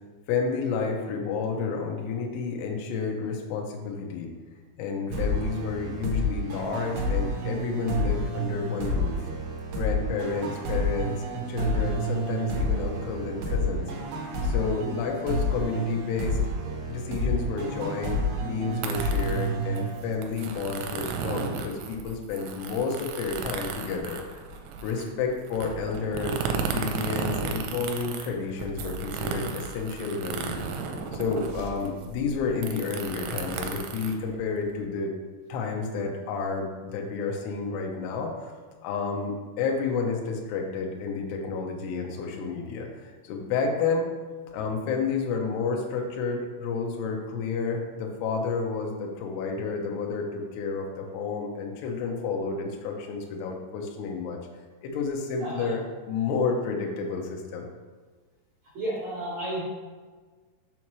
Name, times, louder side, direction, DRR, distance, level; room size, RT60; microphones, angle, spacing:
voice 1, 0.3-4.3 4.8-9.2 9.7-11.2 11.5-13.8 14.4-16.4 16.9-24.4 24.8-30.7 31.1-35.1 35.5-38.5 38.8-44.1 44.5-54.4 54.8-57.7, left 5 dB, 75° left, 1 dB, 2.7 m, -30 dB
sound 1, 5.1-20.6, equal, 70° right, 2.3 m, -29 dB
sound 2, 18.7-34.8, right 5 dB, 85° right, 3.0 m, -34 dB
voice 2, 58.7-59.6, right 1 dB, 55° right, -8 dB, 2.0 m, -32 dB
7.2 x 6.3 x 3.1 m, 1.4 s
omnidirectional pair, 5.4 m